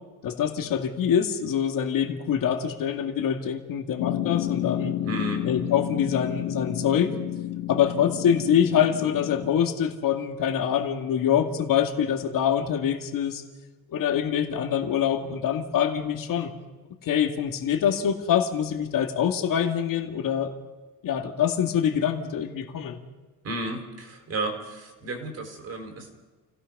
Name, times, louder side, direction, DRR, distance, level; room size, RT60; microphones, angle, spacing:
voice 1, 0.2-4.9 5.4-7.1 7.7-13.4 13.9-16.5 17.0-20.5 21.0-23.0, left 8 dB, 55° left, 4 dB, 2.3 m, -25 dB
sound 1, 4.0-9.5, left 13 dB, 75° left, 1.2 m, -31 dB
voice 2, 5.0-5.5 23.4-26.1, right 2 dB, 40° right, 4 dB, 4.3 m, -33 dB
29.5 x 16.5 x 5.5 m, 1.2 s
cardioid pair, 160°, 38 cm